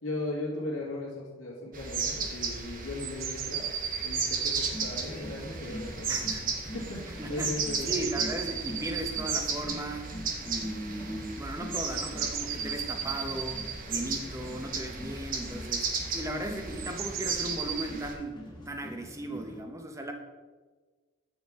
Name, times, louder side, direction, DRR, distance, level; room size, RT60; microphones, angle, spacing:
voice 1, 0.0-3.7 4.0-6.1 6.6-8.1, left 2 dB, 75° left, -7 dB, 1.9 m, -37 dB
sound 1, 1.7-18.1, right 4 dB, 40° right, 0.9 m, -35 dB
sound 2, 3.0-4.7 7.2-9.4 10.0-10.1 11.9-13.8 16.7-17.8, right 8 dB, 70° right, 0.6 m, -35 dB
sound 3, 4.5-19.6, left 1 dB, 20° left, 1.1 m, -45 dB
voice 2, 6.1-6.6 7.2-7.5 7.8-10.1 10.4-18.4 18.7-20.1, right 1 dB, 15° right, 4 dB, 0.7 m, -37 dB
8.6 x 6.7 x 3.5 m, 1.4 s
head